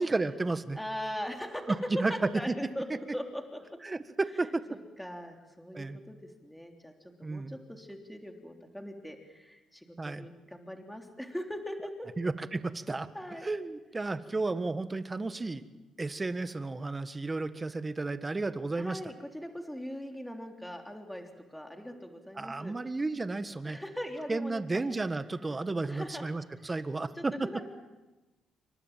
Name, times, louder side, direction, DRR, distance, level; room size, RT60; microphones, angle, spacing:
voice 1, 0.0-0.8 2.0-2.1 3.8-4.6 5.7-6.0 7.2-7.6 10.0-10.3 12.2-13.1 13.4-15.6 16.0-19.0 22.4-23.8 24.3-27.3, right 3 dB, 20° right, 11 dB, 1.6 m, -33 dB
voice 2, 0.7-3.6 4.7-6.9 7.2-12.1 13.1-13.5 18.8-22.7 23.6-24.6 25.8-26.3 26.5-26.7 27.1-27.6, equal, 5° left, 3 dB, 3.5 m, -40 dB
28.5 x 24.5 x 7.6 m, 1.1 s
cardioid pair, 90°, 0 cm